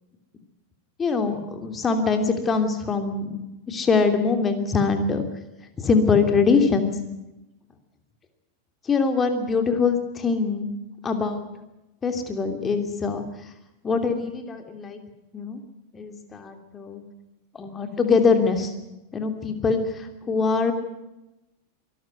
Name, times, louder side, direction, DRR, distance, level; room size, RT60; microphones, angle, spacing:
voice 1, 1.0-3.4 3.7-5.2 5.8-6.9 8.9-10.7 11.0-11.5 12.0-13.2 13.8-15.0 15.3-15.6 15.9-17.0 17.5-18.7 19.1-20.7, left 4 dB, 20° left, 7 dB, 3.0 m, -23 dB
24.0 x 13.5 x 9.4 m, 0.94 s
figure-of-eight pair, 90°, 0 cm